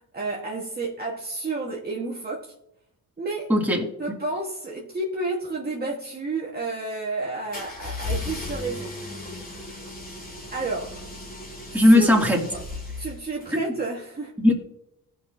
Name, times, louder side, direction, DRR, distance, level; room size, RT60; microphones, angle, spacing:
voice 1, 0.1-2.5 3.2-3.5 4.0-9.0 10.5-11.0 11.7-12.2 13.0-14.3, right 3 dB, 25° right, 1.4 m, -31 dB
voice 2, 3.5-3.9 11.7-12.4 13.5-13.6 14.4-14.5, left 1 dB, 5° right, 2.4 m, -17 dB
sound 1, 7.5-13.5, left 2 dB, 25° left, 2.0 m, -35 dB
15.5 x 5.9 x 2.7 m
cardioid pair, 75°, 37 cm